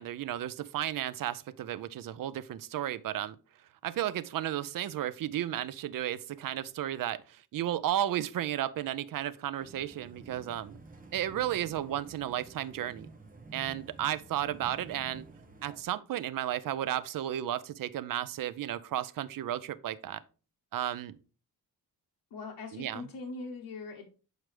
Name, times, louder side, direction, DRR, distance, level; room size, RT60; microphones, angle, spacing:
voice 1, 0.0-3.4 3.8-10.8 11.1-13.1 13.5-15.2 15.6-20.2 20.7-21.2 22.7-23.0, right 12 dB, 60° right, 0.5 m, -33 dB
sound 1, 9.6-15.8, right 2 dB, 20° right, 0.9 m, -51 dB
voice 2, 22.3-24.1, left 3 dB, 85° left, 1.0 m, -41 dB
7.6 x 4.7 x 3.2 m
wide cardioid pair, 165°, 38 cm